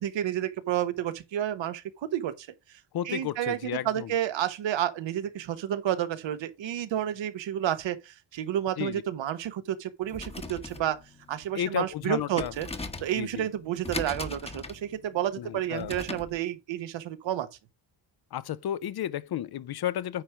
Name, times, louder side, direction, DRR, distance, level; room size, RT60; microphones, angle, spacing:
voice 1, 0.0-2.5 3.0-11.0 11.3-12.7 13.0-17.5, right 11 dB, 80° right, 1.2 m, -30 dB
voice 2, 2.9-4.1 8.8-9.0 11.5-12.5 13.2-13.5 15.4-15.9 18.3-20.2, left 11 dB, 60° left, 0.6 m, -32 dB
sound 1, 10.0-16.4, left 2 dB, 15° left, 1.0 m, -40 dB
9.4 x 4.5 x 4.9 m
cardioid pair, 120°, 44 cm